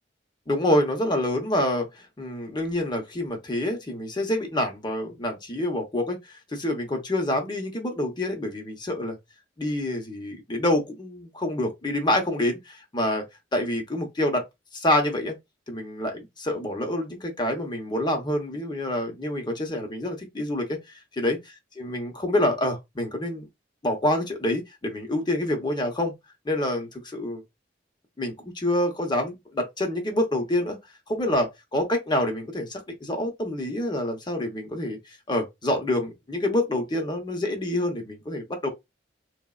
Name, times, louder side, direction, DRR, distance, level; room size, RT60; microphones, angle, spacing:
voice 1, 0.5-9.2 9.6-13.2 13.5-14.5 14.7-15.4 15.7-20.8 21.2-21.4 21.8-23.5 23.8-26.1 26.4-27.4 28.2-30.8 31.1-38.7, left 1 dB, 25° left, 0.6 m, -27 dB
3.2 x 2.0 x 2.3 m
head